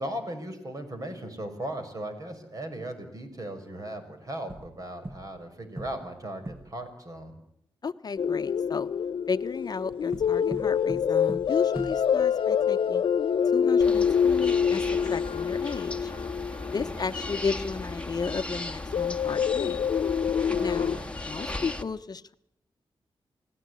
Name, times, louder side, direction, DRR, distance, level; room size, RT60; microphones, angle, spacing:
voice 1, 0.0-7.3 16.7-17.1 20.5-21.2, right 1 dB, 40° right, 7 dB, 6.2 m, -38 dB
sound 1, 4.5-5.5 5.8-6.8 10.1-12.4, right 1 dB, 25° right, 2.0 m, -41 dB
voice 2, 7.8-8.9 9.3-13.0 13.5-16.1 16.7-19.8 20.6-22.3, left 5 dB, 50° left, 9 dB, 1.0 m, -33 dB
sound 2, 8.2-17.8 18.8-21.0, left 7 dB, 75° left, 1.0 m, -26 dB
sound 3, 13.8-21.8, left 2 dB, 15° left, 1.8 m, -37 dB
29.5 x 17.5 x 9.8 m, 0.79 s
wide cardioid pair, 100°, 9 cm